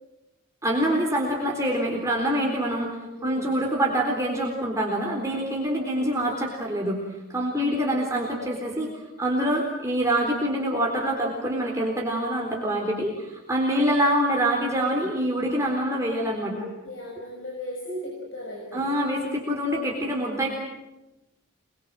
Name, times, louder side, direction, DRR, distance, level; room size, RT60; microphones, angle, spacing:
voice 1, 0.6-2.9 3.2-7.0 7.3-16.6 18.7-20.5, right 1 dB, 15° right, -2 dB, 4.0 m, -25 dB
voice 2, 3.1-3.5 5.8-6.0 16.5-18.9, left 1 dB, 70° left, -1 dB, 6.8 m, -37 dB
27.5 x 23.0 x 7.7 m, 1.0 s
head